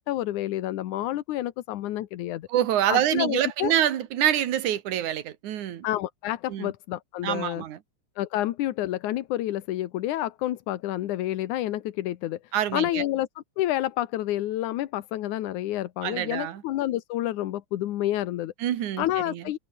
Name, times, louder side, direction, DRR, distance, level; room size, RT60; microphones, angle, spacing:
voice 1, 0.1-2.5 2.9-3.7 5.8-7.6 8.2-13.3 13.6-18.5 19.0-19.6, left 14 dB, 85° left, 2.5 m, -29 dB
voice 2, 2.5-5.9 6.5-6.7 7.2-7.8 12.5-13.0 16.0-16.6 18.6-19.4, right 11 dB, 90° right, 2.9 m, -26 dB
omnidirectional pair, 3.4 m